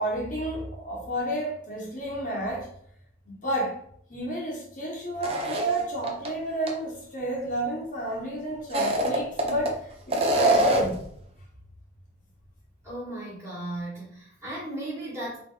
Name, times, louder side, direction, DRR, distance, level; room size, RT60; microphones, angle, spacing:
voice 1, 0.0-2.7 3.3-3.8 4.1-11.0, right 1 dB, 40° left, -4 dB, 1.2 m, -30 dB
sound 1, 5.2-6.3 6.7-6.8 8.6-9.7 10.1-11.0, right 1 dB, 30° right, 0.6 m, -24 dB
voice 2, 12.8-15.4, right 1 dB, 15° right, -7 dB, 1.7 m, -36 dB
4.0 x 2.8 x 3.9 m, 0.65 s
head